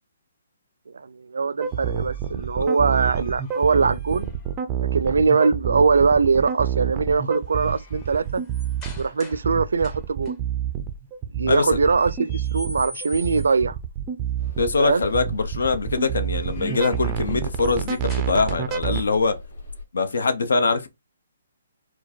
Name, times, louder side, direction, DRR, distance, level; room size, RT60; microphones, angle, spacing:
voice 1, 0.9-4.3 4.9-8.4 9.0-10.4 11.3-13.8 14.8-15.0, right 4 dB, 85° right, 0.4 m, -21 dB
sound 1, 1.6-4.5 6.3-6.7 7.1-9.5 9.8-10.3 11.8-13.7 16.0-18.9, left 2 dB, 15° left, 0.7 m, -45 dB
sound 2, 1.6-19.0, right 9 dB, 15° right, 0.4 m, -28 dB
sound 3, 14.4-19.8, left 2 dB, 60° left, 2.2 m, -38 dB
voice 2, 14.6-19.4 19.9-20.9, left 4 dB, 85° left, 0.9 m, -23 dB
4.6 x 2.2 x 4.3 m
hypercardioid pair, 175°, 0 cm